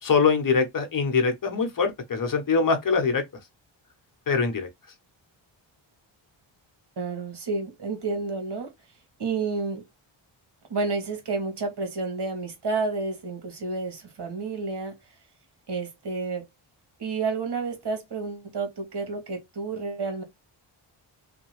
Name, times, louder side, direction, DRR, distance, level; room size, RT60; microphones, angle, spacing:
voice 1, 0.0-3.2 4.3-4.7, left 5 dB, 40° left, 1.0 m, -23 dB
voice 2, 7.0-8.7 9.2-9.8 10.7-14.9 15.7-16.4 17.0-20.2, right 4 dB, 55° right, 1.3 m, -30 dB
2.8 x 2.3 x 3.1 m
cardioid pair, 75°, 49 cm